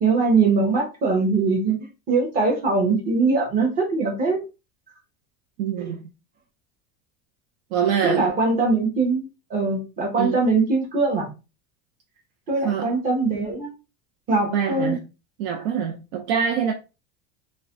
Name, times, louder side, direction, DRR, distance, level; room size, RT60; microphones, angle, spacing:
voice 1, 0.0-1.8 2.1-4.4 5.8-5.9 8.0-11.3 12.5-13.7 14.3-15.0, right 3 dB, 25° right, 0.9 m, -22 dB
voice 2, 5.6-6.0 7.7-8.3 10.2-10.4 12.6-12.9 14.5-15.0 15.4-16.7, right 8 dB, 75° right, 0.5 m, -24 dB
3.2 x 2.2 x 2.5 m
cardioid pair, 175°, 34 cm